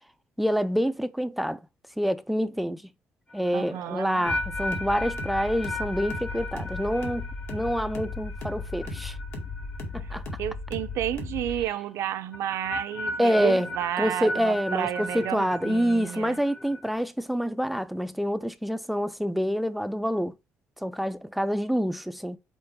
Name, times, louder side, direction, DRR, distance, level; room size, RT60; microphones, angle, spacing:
voice 1, 0.4-1.6 2.0-2.9 3.3-9.2 9.9-10.2 13.2-13.7 14.0-20.3 20.8-22.4, equal, ahead, 0.5 m, -27 dB
sound 1, 3.3-10.4 10.7-11.1 12.3-16.9, left 1 dB, 15° left, 1.0 m, -36 dB
voice 2, 3.5-4.3 10.0-16.4, right 11 dB, 80° right, 0.7 m, -31 dB
sound 2, 4.3-11.6, left 3 dB, 60° left, 2.0 m, -36 dB
5.4 x 4.4 x 4.6 m
cardioid pair, 130°, 5 cm